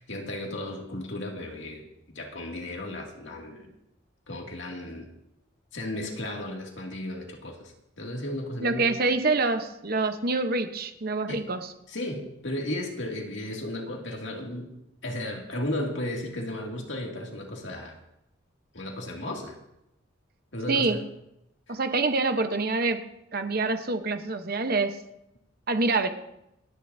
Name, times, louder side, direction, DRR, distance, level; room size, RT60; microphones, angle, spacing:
voice 1, 0.0-3.7 4.3-5.1 5.7-8.8 11.3-11.4 11.9-14.7 15.0-18.0 18.7-19.5 20.5-21.0 21.7-21.8, left 1 dB, 60° left, 0 dB, 2.4 m, -34 dB
voice 2, 8.6-11.7 20.7-21.0 21.7-25.0 25.7-26.1, right 3 dB, 50° right, 7 dB, 1.0 m, -26 dB
28.0 x 10.0 x 2.7 m, 0.84 s
head